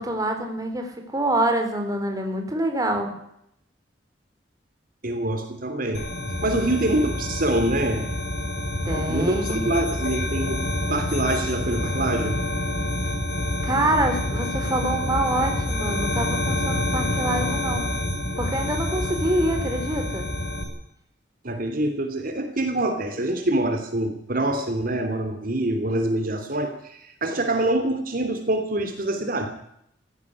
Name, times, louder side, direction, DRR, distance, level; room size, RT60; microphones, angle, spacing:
voice 1, 0.0-3.1 8.9-9.7 13.6-17.9 18.4-20.3, right 1 dB, 20° right, 4 dB, 3.8 m, -26 dB
voice 2, 5.0-6.0 6.4-8.1 9.1-10.6 10.9-12.4 21.4-29.5, right 1 dB, 55° right, 6 dB, 2.9 m, -25 dB
sound 1, 5.9-20.6, left 1 dB, 65° left, 4.8 m, -27 dB
17.5 x 15.5 x 9.7 m, 0.74 s
head